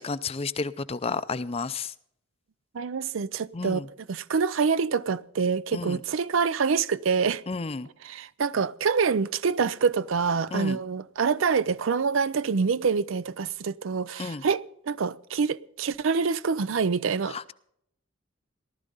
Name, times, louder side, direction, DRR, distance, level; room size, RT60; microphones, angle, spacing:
voice 1, 0.0-1.9 3.5-3.9 5.7-6.0 7.5-7.9 10.5-10.8 14.2-14.4 17.3-17.5, left 4 dB, 30° left, 0.5 m, -32 dB
voice 2, 2.7-3.8 4.1-7.4 8.0-17.5, right 5 dB, 75° right, 0.5 m, -26 dB
18.5 x 12.5 x 3.9 m
head